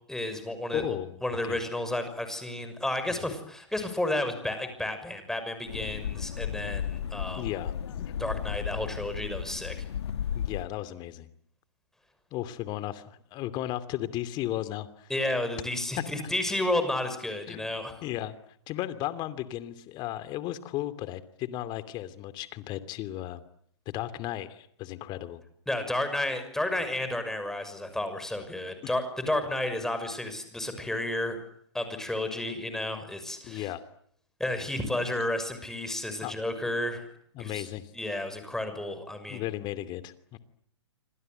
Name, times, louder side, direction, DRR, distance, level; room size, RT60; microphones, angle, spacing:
voice 1, 0.1-0.8 1.2-7.5 8.2-9.9 15.1-18.0 25.7-31.4 31.7-33.7 34.4-37.1 37.4-37.7 37.9-39.5, left 1 dB, 5° left, 8 dB, 6.2 m, -32 dB
voice 2, 0.7-1.6 5.8-5.9 7.4-8.1 10.3-11.3 12.3-15.1 16.2-16.3 17.5-17.7 18.0-18.4 18.7-23.4 23.9-25.4 28.8-28.9 33.4-33.8 36.2-36.4 37.3-37.9 39.3-40.4, left 14 dB, 30° left, 13 dB, 2.7 m, -35 dB
sound 1, 5.7-10.6, left 9 dB, 65° left, 1.7 m, -34 dB
28.5 x 25.5 x 7.9 m, 0.70 s
hypercardioid pair, 125°, 15 cm